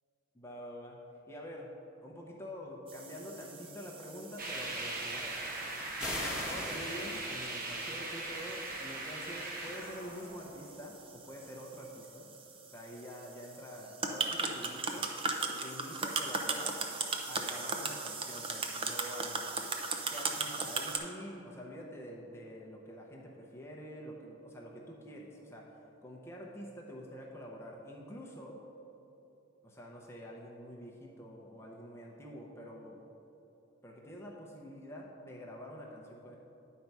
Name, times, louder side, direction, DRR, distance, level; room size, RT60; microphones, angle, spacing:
voice 1, 0.3-1.0 1.3-1.7 2.0-5.4 6.3-12.3 12.7-15.1 15.6-16.8 17.3-19.5 20.1-25.7 26.0-28.6 29.6-33.0 33.8-36.4, equal, 10° left, -2 dB, 0.7 m, -46 dB
sound 1, 2.9-21.0, right 4 dB, 25° right, 0.5 m, -39 dB
sound 2, 4.4-11.0, right 2 dB, 45° right, 1.0 m, -40 dB
sound 3, 6.0-8.0, left 1 dB, 5° right, 1.2 m, -39 dB
10.0 x 4.5 x 5.4 m, 2.9 s
head